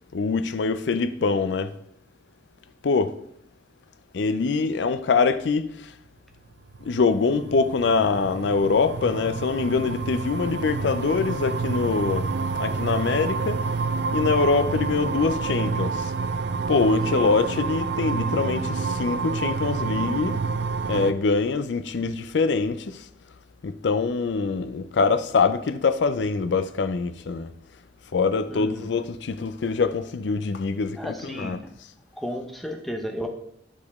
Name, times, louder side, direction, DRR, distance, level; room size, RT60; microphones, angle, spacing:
voice 1, 0.1-1.8 2.8-3.2 4.1-5.9 6.8-13.6 14.1-16.1 16.7-20.4 20.9-23.1 23.6-27.5 28.1-31.6, left 4 dB, 75° left, 0.4 m, -24 dB
sound 1, 6.7-21.1, right 4 dB, 65° right, 0.4 m, -28 dB
voice 2, 28.5-28.9 31.0-31.7 32.2-33.3, equal, ahead, 0.7 m, -33 dB
8.3 x 5.0 x 3.5 m
head